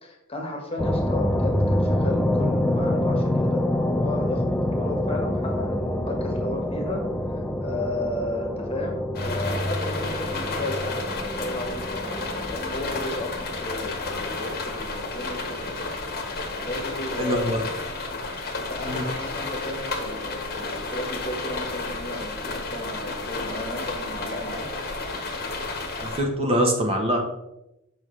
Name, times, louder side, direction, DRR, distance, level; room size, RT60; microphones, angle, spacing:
voice 1, 0.0-15.8 16.6-17.6 18.7-24.7, left 1 dB, 30° left, 1 dB, 1.3 m, -34 dB
sound 1, 0.8-15.2, left 1 dB, 5° left, 0.4 m, -27 dB
sound 2, 9.2-26.2, left 3 dB, 50° left, 1.3 m, -32 dB
voice 2, 17.2-17.6 18.8-19.0 26.0-27.2, equal, 30° right, 2 dB, 1.0 m, -23 dB
7.2 x 5.8 x 3.2 m, 0.89 s
head